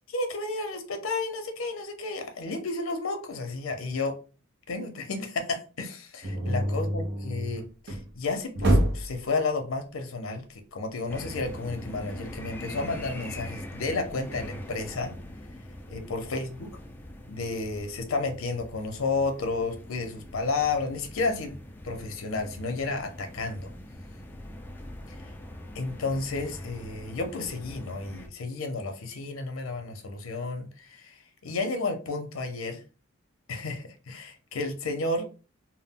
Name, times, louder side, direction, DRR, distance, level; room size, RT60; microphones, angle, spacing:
voice 1, 0.1-4.2 4.7-15.2 15.9-16.7 17.3-21.6 21.8-23.7 25.1-25.2 25.7-32.8 33.5-35.2, left 3 dB, 80° left, 6 dB, 0.5 m, -32 dB
sound 1, 6.2-8.1 8.6-9.2, right 1 dB, 55° right, 0.6 m, -26 dB
sound 2, 11.1-28.3, left 1 dB, 10° left, 0.3 m, -42 dB
2.2 x 2.1 x 3.5 m, 0.35 s
head